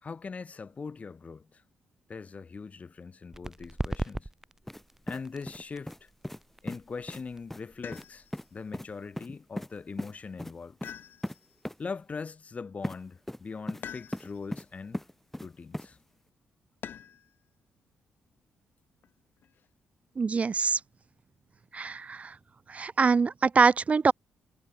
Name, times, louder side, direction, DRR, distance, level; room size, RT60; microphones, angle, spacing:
voice 1, 0.0-1.6 2.1-4.3 5.1-6.1 6.6-8.3 8.5-10.8 11.8-15.0 15.4-16.0, left 5 dB, 40° left, 1.4 m, -41 dB
sound 1, 3.3-10.7, right 1 dB, 10° right, 1.8 m, -41 dB
sound 2, 4.7-4.8 5.1-6.0 6.2-6.4 6.7-6.8 7.1-7.2 7.5-7.6 7.9-8.1 8.3-8.5 8.7-8.9 9.2-9.7 10.0-10.1 10.4-10.5 10.8-10.9 11.2-11.4 11.6-11.8 12.8-13.0 13.3-13.8 14.1-14.6 14.9-15.5 15.7-15.9, left 1 dB, 5° left, 2.8 m, -37 dB
sound 3, 7.8-8.5 10.8-11.6 13.8-14.5 16.8-17.3 19.0-19.7, left 9 dB, 65° left, 7.1 m, -45 dB
voice 2, 20.2-20.8 21.7-22.4 22.7-24.1, right 5 dB, 40° right, 0.4 m, -24 dB
supercardioid pair, 65°, 4 cm